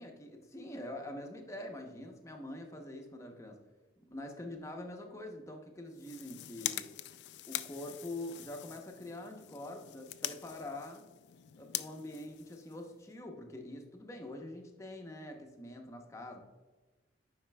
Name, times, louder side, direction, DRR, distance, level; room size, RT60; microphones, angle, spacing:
voice 1, 0.0-3.6 4.1-6.9 7.5-11.0 11.6-16.4, left 1 dB, 15° left, 3 dB, 0.7 m, -45 dB
sound 1, 5.9-13.2, left 14 dB, 70° left, 0.3 m, -43 dB
9.2 x 5.0 x 2.2 m, 1.3 s
head